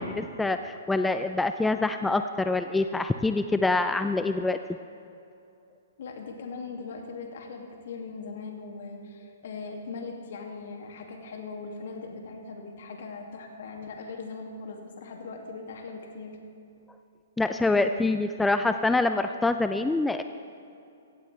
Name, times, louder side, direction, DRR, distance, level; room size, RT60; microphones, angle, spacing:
voice 1, 0.0-4.6 17.4-20.2, left 2 dB, 5° left, 9 dB, 0.4 m, -25 dB
voice 2, 6.0-16.4, left 4 dB, 65° left, 2 dB, 2.2 m, -40 dB
16.0 x 15.5 x 3.3 m, 2.6 s
hypercardioid pair, 130°, 0 cm